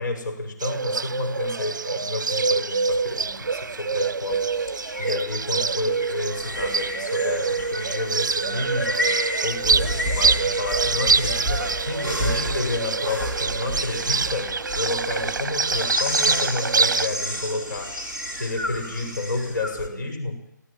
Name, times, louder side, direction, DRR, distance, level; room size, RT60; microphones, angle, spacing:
voice 1, 0.0-4.7 5.0-20.4, left 2 dB, 70° left, 4 dB, 7.8 m, -30 dB
Bird, 0.6-17.1, right 4 dB, 70° right, 0.8 m, -25 dB
sound 1, 2.9-19.9, equal, 15° left, 2.3 m, -31 dB
18.0 x 18.0 x 9.0 m, 0.81 s
hypercardioid pair, 170°, 10 cm